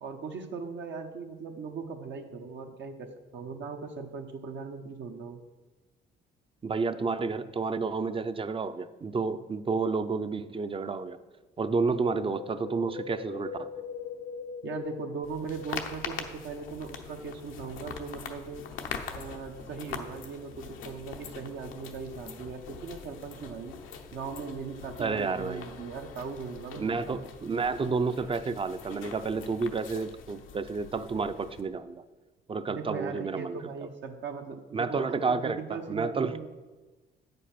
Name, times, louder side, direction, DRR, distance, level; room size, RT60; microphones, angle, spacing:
voice 1, 0.0-5.4 14.6-18.6 19.1-23.8 24.1-27.2 32.7-36.5, right 5 dB, 65° right, 3 dB, 0.8 m, -39 dB
voice 2, 6.6-11.2 11.6-13.7 25.0-25.6 26.8-32.0 32.5-33.6 34.7-36.4, right 4 dB, 25° right, 12 dB, 0.5 m, -30 dB
Wind, 11.6-16.0 16.2-16.3, left 7 dB, 45° left, 0.4 m, -41 dB
sound 1, 15.2-31.6, left 6 dB, 90° left, 0.8 m, -43 dB
8.3 x 5.3 x 5.8 m, 1.2 s
cardioid pair, 90°, 20 cm